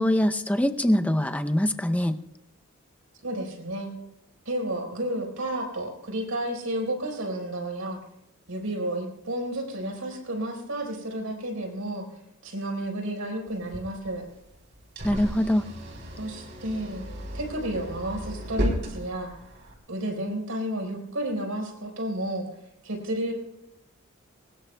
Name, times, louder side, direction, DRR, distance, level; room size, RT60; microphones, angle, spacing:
voice 1, 0.0-2.2 15.0-15.6, left 1 dB, 5° left, 7 dB, 0.6 m, -23 dB
voice 2, 3.2-3.9 4.4-8.0 8.5-12.1 12.4-14.2 16.2-17.0 17.3-19.3 19.9-22.4 22.8-23.3, right 1 dB, 75° right, 2 dB, 4.6 m, -31 dB
sound 1, 13.5-19.7, equal, 55° right, 3.6 m, -34 dB
23.0 x 20.0 x 2.3 m, 0.82 s
head